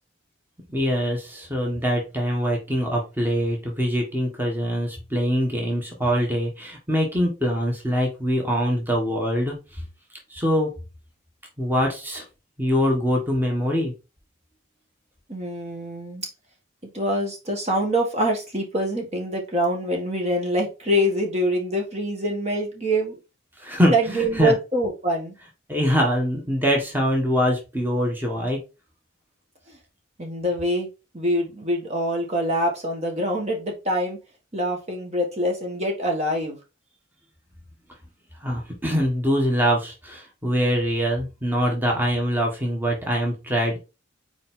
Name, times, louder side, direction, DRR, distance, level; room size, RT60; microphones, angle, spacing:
voice 1, 0.7-9.8 10.3-10.7 11.6-12.2 12.6-13.9 23.6-24.5 25.7-28.6 38.4-43.8, equal, 10° right, 0 dB, 1.5 m, -23 dB
voice 2, 15.3-16.3 16.9-23.2 23.9-25.3 29.7-29.8 30.2-30.9 31.1-34.2 34.5-36.6, equal, 35° right, 1 dB, 1.5 m, -25 dB
5.5 x 4.6 x 3.7 m, 0.29 s
head